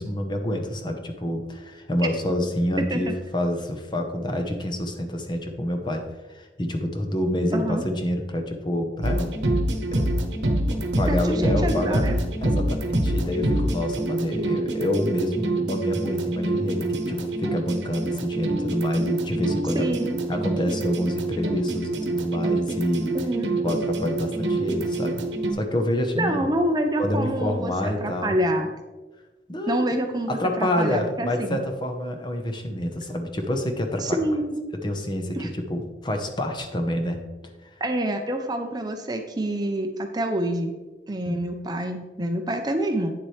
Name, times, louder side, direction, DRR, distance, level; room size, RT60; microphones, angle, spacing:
voice 1, 0.0-9.3 9.9-10.1 10.7-12.1 12.4-19.9 20.3-23.1 23.6-25.2 25.5-26.5 27.0-28.4 29.5-29.9 30.3-34.2 34.8-37.2 37.6-37.7 41.2-41.4, left 1 dB, 25° left, 5 dB, 0.8 m, -27 dB
voice 2, 2.8-3.2 7.5-7.8 11.1-12.2 19.7-20.2 23.1-23.8 26.2-28.7 29.7-31.6 34.0-34.6 35.3-35.5 37.8-40.7 41.1-43.1, right 1 dB, 20° right, 5 dB, 0.5 m, -27 dB
sound 1, 9.0-25.5, right 2 dB, 80° right, 1.0 m, -26 dB
9.3 x 7.2 x 3.2 m, 1.2 s
head